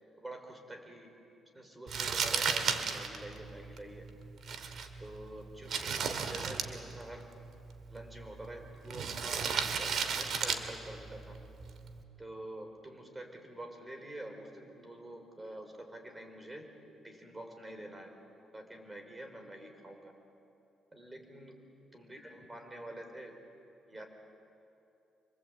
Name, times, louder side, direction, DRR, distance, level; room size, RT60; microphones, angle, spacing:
voice 1, 0.2-1.1 1.5-4.1 5.0-7.2 7.9-11.4 12.2-16.7 17.0-18.1 18.5-20.1 20.9-21.5 21.9-23.4 23.9-24.1, right 1 dB, 15° right, 5 dB, 4.5 m, -47 dB
Crumpling crinkling, 1.9-12.0, right 6 dB, 65° right, 2.1 m, -36 dB
26.0 x 24.5 x 8.4 m, 2.8 s
cardioid pair, 90°, 0 cm